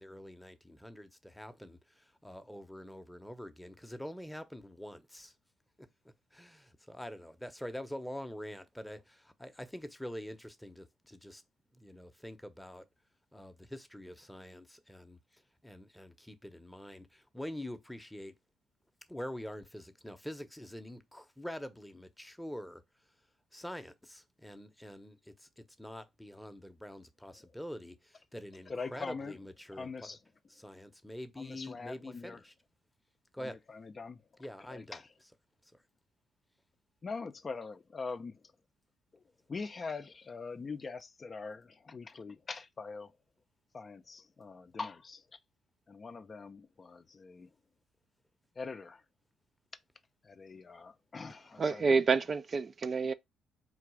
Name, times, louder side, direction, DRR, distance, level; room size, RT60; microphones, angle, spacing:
voice 1, 0.0-5.3 6.3-11.4 11.7-12.8 13.3-15.2 15.6-18.3 19.1-22.8 23.5-25.5 25.8-30.2 30.5-32.5 33.3-33.6 34.4-35.3, left 1 dB, 5° left, 0.7 m, -45 dB
voice 2, 28.7-29.4 29.7-30.2 31.4-32.4 33.4-35.1 37.0-38.4 39.1-39.2 39.5-43.1 43.7-45.4 45.9-47.5 48.6-49.0 50.2-52.0, left 4 dB, 40° left, 0.4 m, -43 dB
voice 3, 51.6-53.1, right 4 dB, 40° right, 0.4 m, -28 dB
3.9 x 2.4 x 4.6 m
supercardioid pair, 70°, 0 cm